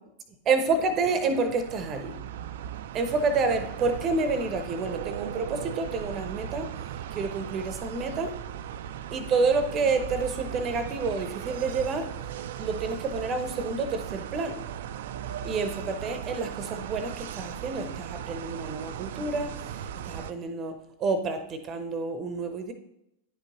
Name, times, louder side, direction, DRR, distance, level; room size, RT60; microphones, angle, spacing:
voice 1, 0.5-2.2 2.9-6.7 7.1-8.4 9.1-12.1 12.6-14.6 15.4-22.7, right 4 dB, 30° right, 9 dB, 0.7 m, -29 dB
sound 1, 0.7-20.3, right 10 dB, 55° right, 0.3 m, -38 dB
10.0 x 5.2 x 2.9 m, 0.83 s
figure-of-eight pair, 90°, 0 cm